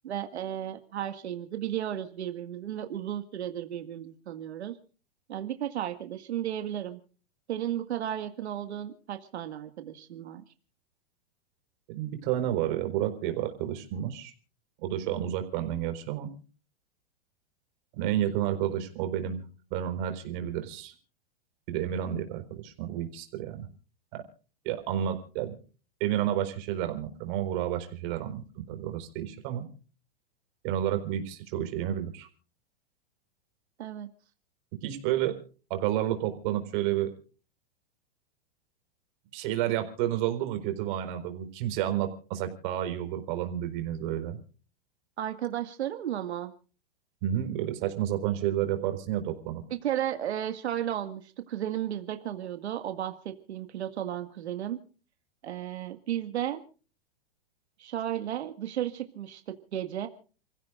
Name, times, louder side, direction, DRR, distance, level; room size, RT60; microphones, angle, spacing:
voice 1, 0.0-4.7 5.3-7.0 7.5-10.4 33.8-34.1 45.2-46.5 49.7-54.8 55.4-56.6 57.8-60.1, right 11 dB, 80° right, 7 dB, 2.0 m, -34 dB
voice 2, 11.9-14.3 14.8-16.3 17.9-19.4 19.7-20.9 21.7-23.7 24.1-24.2 24.6-25.6 26.0-29.7 30.6-32.3 34.8-35.3 35.7-37.1 39.3-44.4 47.2-49.6, right 11 dB, 45° right, 6 dB, 4.5 m, -30 dB
30.0 x 15.5 x 2.5 m, 0.38 s
hypercardioid pair, 145°, 32 cm